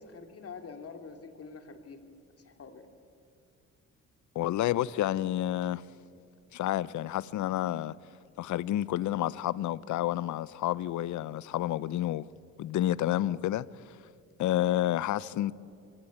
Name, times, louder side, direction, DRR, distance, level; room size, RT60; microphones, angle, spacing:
voice 1, 0.0-2.0 2.4-2.9, left 5 dB, 50° left, 2.7 m, -46 dB
voice 2, 4.4-5.8 6.5-7.9 8.4-12.2 12.6-13.7 14.4-15.5, left 13 dB, 75° left, 0.7 m, -29 dB
24.0 x 17.0 x 8.6 m
cardioid pair, 90°, 30 cm